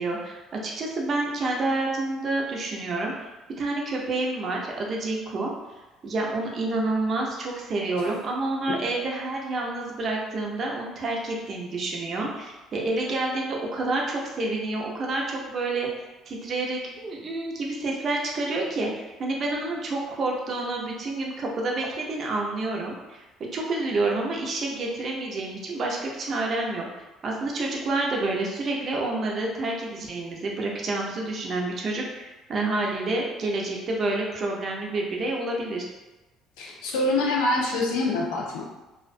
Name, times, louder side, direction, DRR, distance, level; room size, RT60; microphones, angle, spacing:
voice 1, 0.0-3.1 3.6-5.5 6.0-23.2 23.5-35.9, right 2 dB, 45° right, -1 dB, 0.5 m, -28 dB
voice 2, 36.6-38.6, left 2 dB, 85° left, -2 dB, 0.5 m, -25 dB
2.3 x 2.1 x 2.5 m, 1.1 s
supercardioid pair, 90°, 0 cm